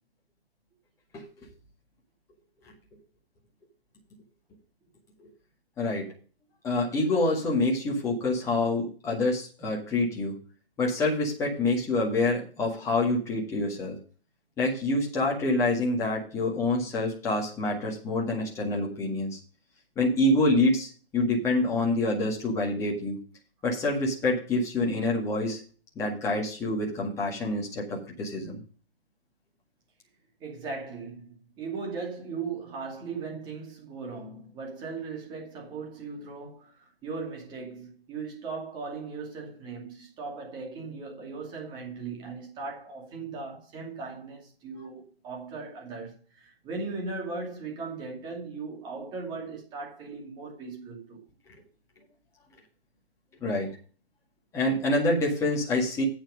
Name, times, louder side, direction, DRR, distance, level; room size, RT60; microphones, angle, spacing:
voice 1, 5.8-6.1 6.6-10.3 10.8-14.0 14.6-19.4 19.9-23.2 23.6-25.6 25.9-28.6 53.4-53.7 54.5-56.0, left 2 dB, 10° left, 1.8 m, -26 dB
voice 2, 30.4-51.2, right 4 dB, 15° right, 2.5 m, -38 dB
8.6 x 7.4 x 5.2 m
hypercardioid pair, 150°, 31 cm